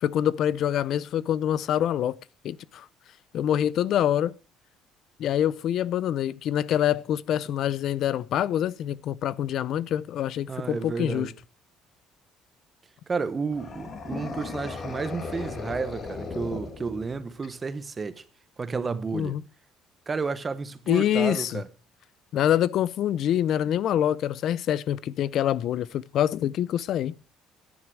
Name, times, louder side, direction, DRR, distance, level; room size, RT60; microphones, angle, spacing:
voice 1, 0.0-2.2 2.4-2.9 3.3-4.3 5.2-11.3 19.1-19.4 20.9-21.6 22.3-27.1, left 10 dB, 55° left, 0.5 m, -25 dB
voice 2, 10.5-11.3 13.1-18.2 18.6-19.4 20.1-21.7, right 4 dB, 20° right, 1.0 m, -31 dB
sound 1, 13.5-17.4, left 4 dB, 35° left, 2.4 m, -36 dB
10.5 x 9.8 x 6.1 m
cardioid pair, 145°, 0 cm